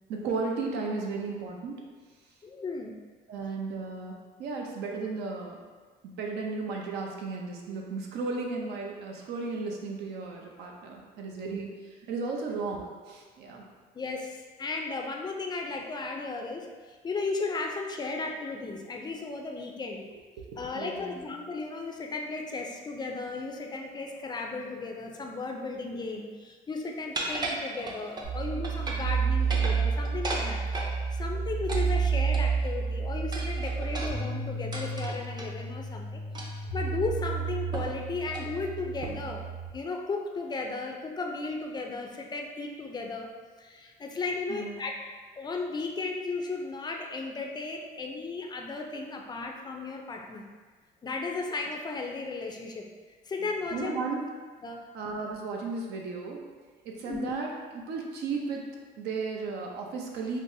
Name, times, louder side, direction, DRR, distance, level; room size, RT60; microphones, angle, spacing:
voice 1, 0.1-1.9 3.3-5.6 6.0-13.7 20.5-21.2 44.5-44.9 53.7-54.3 54.9-56.5 56.8-57.5 57.9-58.7 59.0-60.4, right 4 dB, 75° right, 0 dB, 0.6 m, -35 dB
voice 2, 2.4-3.0 13.9-20.1 20.6-39.4 39.7-43.3 43.6-44.9 45.4-50.5 51.0-52.9 53.3-54.1 54.6-54.9 57.1-57.3, left 3 dB, 25° left, 2 dB, 0.4 m, -35 dB
sound 1, 27.1-28.3 28.6-29.1 29.4-30.9 31.7-32.7 33.3-35.5 36.3-36.7 37.0-37.1 37.7-38.0 38.3-38.5 39.0-39.4, right 2 dB, 25° right, 0.5 m, -36 dB
sound 2, 28.2-39.7, right 5 dB, 55° right, 1.1 m, -30 dB
5.3 x 2.1 x 2.6 m, 1.5 s
cardioid pair, 110°, 17 cm